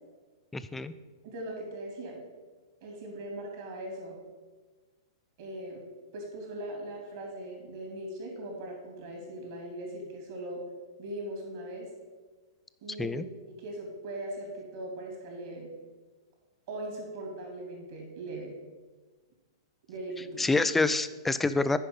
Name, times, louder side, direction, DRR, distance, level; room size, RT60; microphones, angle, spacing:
voice 1, 0.5-0.9 13.0-13.2 20.4-21.8, left 3 dB, 10° left, 13 dB, 0.4 m, -27 dB
voice 2, 1.2-2.2 2.8-4.1 5.4-5.8 6.1-10.6 11.0-11.9 12.8-15.7 16.7-18.5 19.9-20.7, right 1 dB, 55° right, 0 dB, 3.3 m, -40 dB
10.0 x 5.3 x 5.4 m, 1.3 s
figure-of-eight pair, 105°, 2 cm